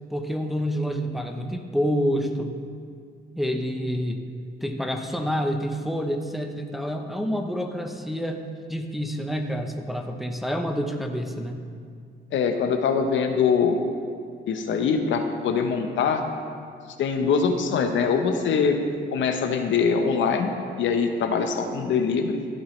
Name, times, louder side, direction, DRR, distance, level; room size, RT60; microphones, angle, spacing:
voice 1, 0.1-2.5 3.3-4.2 4.6-8.4 8.7-11.6, equal, ahead, 3 dB, 0.8 m, -28 dB
voice 2, 12.3-13.8 14.5-16.2 17.0-18.8 19.1-20.5 20.8-22.4, left 6 dB, 70° left, 5 dB, 1.0 m, -23 dB
15.0 x 8.1 x 3.2 m, 2.2 s
cardioid pair, 90°, 20 cm